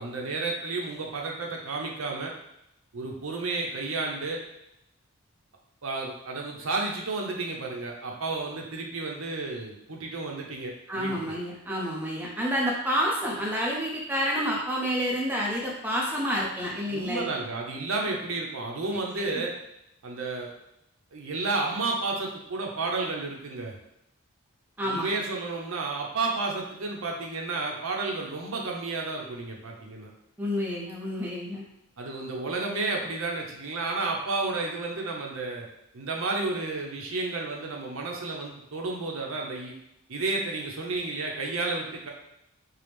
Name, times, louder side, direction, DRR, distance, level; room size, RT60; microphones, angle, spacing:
voice 1, 0.0-2.3 2.9-4.4 5.8-11.1 16.9-19.6 20.0-20.5 21.1-23.7 24.8-30.1 32.0-35.7 35.9-39.7 40.1-42.1, right 3 dB, 70° right, 0 dB, 0.6 m, -31 dB
voice 2, 10.9-17.2 18.9-19.4 24.8-25.1 30.4-31.6, equal, 10° right, -4 dB, 0.5 m, -29 dB
4.6 x 2.0 x 3.3 m, 0.81 s
head